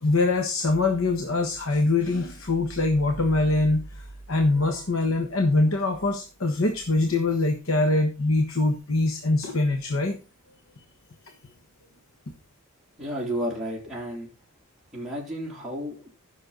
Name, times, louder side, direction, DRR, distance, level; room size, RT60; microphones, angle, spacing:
voice 1, 0.0-10.2, left 2 dB, 75° left, 5 dB, 1.4 m, -23 dB
voice 2, 13.0-14.3 14.9-16.1, equal, ahead, -5 dB, 3.0 m, -32 dB
15.0 x 6.5 x 4.0 m, 0.32 s
head